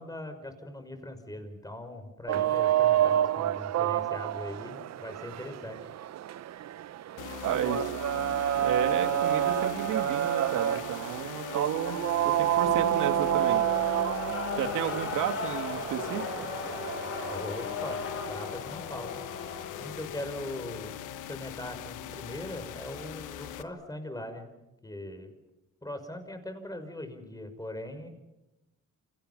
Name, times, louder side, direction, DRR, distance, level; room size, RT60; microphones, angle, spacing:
voice 1, 0.0-5.8 17.3-19.2 19.8-21.0 21.3-24.5 24.8-25.3 25.8-28.1, left 1 dB, 10° left, 7 dB, 5.9 m, -40 dB
sound 1, 2.3-17.4, right 12 dB, 60° right, 0.8 m, -29 dB
sound 2, 7.2-23.6, left 11 dB, 85° left, 1.4 m, -41 dB
voice 2, 7.5-7.9 8.6-13.6 14.6-16.3, right 8 dB, 85° right, 7 dB, 2.4 m, -32 dB
sound 3, 8.5-20.0, left 4 dB, 45° left, 7.2 m, -39 dB
30.0 x 27.0 x 5.6 m, 0.96 s
cardioid pair, 90°, 30 cm